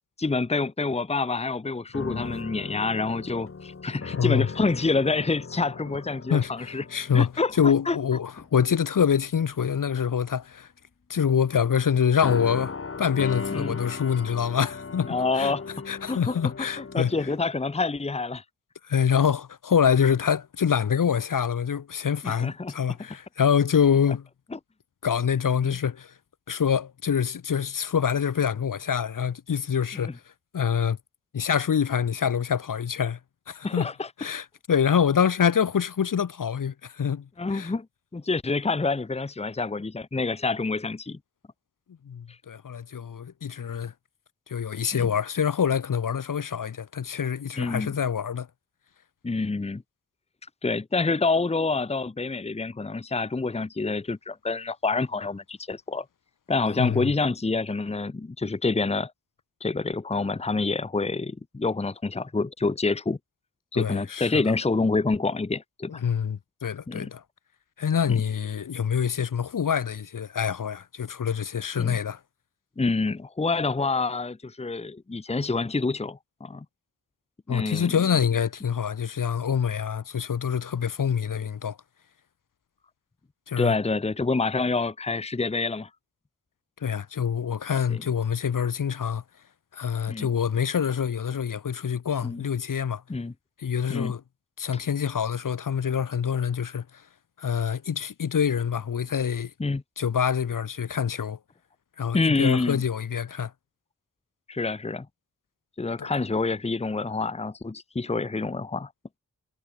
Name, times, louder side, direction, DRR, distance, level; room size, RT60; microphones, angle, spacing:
voice 1, 0.2-6.8 7.1-8.0 13.5-13.8 15.1-15.6 16.1-18.4 22.2-22.7 24.5-24.6 25.6-25.7 29.9-30.1 33.6-34.3 37.4-37.9 38.1-41.2 42.3-42.4 44.9-45.1 47.6-48.0 49.2-49.8 50.6-56.0 56.5-59.1 59.6-63.2 63.7-66.0 66.9-67.1 71.8-72.0 72.8-76.6 77.5-77.9 83.6-85.9 87.9-88.0 90.1-90.3 92.2-92.4 93.1-93.3 93.9-94.1 94.7-94.8 99.6-99.8 102.1-102.8 104.5-105.1 105.8-108.9, left 3 dB, 20° left, 1.2 m, -27 dB
sound 1, 1.9-8.0 8.4-8.6 9.6-10.3 12.2-17.4, left 4 dB, 40° left, 4.6 m, -37 dB
voice 2, 4.1-4.5 6.3-10.7 11.1-12.7 13.0-15.5 15.9-17.3 18.8-24.3 25.0-26.1 26.5-30.2 30.5-31.0 31.3-33.2 33.5-33.9 34.2-37.7 42.0-43.9 44.5-48.5 56.8-57.1 63.7-64.5 65.9-67.2 67.8-72.2 77.5-81.8 83.5-83.7 86.8-89.2 89.7-93.0 93.6-94.2 94.6-97.0 97.4-99.5 100.0-101.4 102.0-103.5 106.0-106.1, left 7 dB, 75° left, 3.0 m, -26 dB
wide cardioid pair, 145°, 33 cm